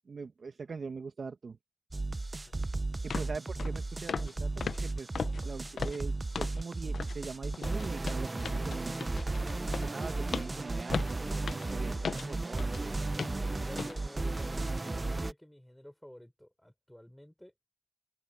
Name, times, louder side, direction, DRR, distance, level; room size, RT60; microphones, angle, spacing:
voice 1, 0.1-1.6 3.0-5.1 5.4-9.2 9.8-12.9, right 5 dB, 50° right, 1.4 m, -42 dB
sound 1, 1.9-15.3, right 2 dB, 25° right, 0.9 m, -34 dB
sound 2, 2.5-2.6 3.1-3.3 3.6-3.8 4.1-4.3 4.6-6.6 6.9-7.2 7.5-12.8 13.2-13.4 13.8-14.0 14.4-14.5, left 6 dB, 60° left, 0.8 m, -38 dB
voice 2, 2.8-3.4 13.3-17.5, equal, 5° left, 4.6 m, -52 dB
cardioid pair, 70°, 0 cm